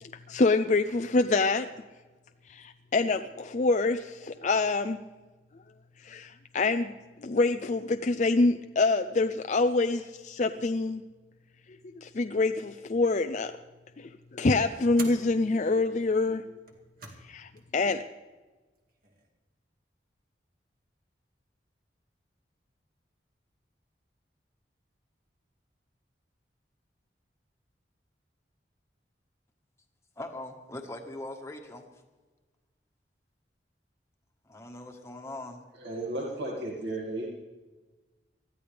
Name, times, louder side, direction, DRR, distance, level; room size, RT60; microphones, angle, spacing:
voice 1, 0.0-1.7 2.5-5.0 6.0-6.9 7.2-11.0 12.0-13.5 14.0-16.4 17.3-18.0, left 3 dB, 40° left, 7 dB, 0.4 m, -26 dB
sound 1, 13.4-13.8 14.9-15.3 16.6-17.3 17.6-17.7 18.8-19.3, right 4 dB, 50° right, 2.2 m, -45 dB
voice 2, 30.2-31.8 34.4-35.6, left 1 dB, 15° left, 2 dB, 1.4 m, -41 dB
voice 3, 35.8-37.3, right 1 dB, 75° right, -2 dB, 2.2 m, -34 dB
20.5 x 14.0 x 3.4 m, 1.2 s
head